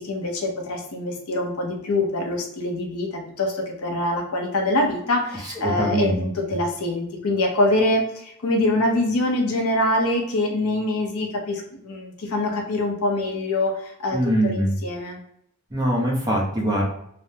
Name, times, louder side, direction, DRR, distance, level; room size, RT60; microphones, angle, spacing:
voice 1, 0.0-15.2, left 1 dB, 75° left, 2 dB, 0.6 m, -24 dB
voice 2, 5.4-6.2 14.1-14.7 15.7-16.8, right 1 dB, 15° right, -3 dB, 0.7 m, -23 dB
3.3 x 2.0 x 2.7 m, 0.72 s
head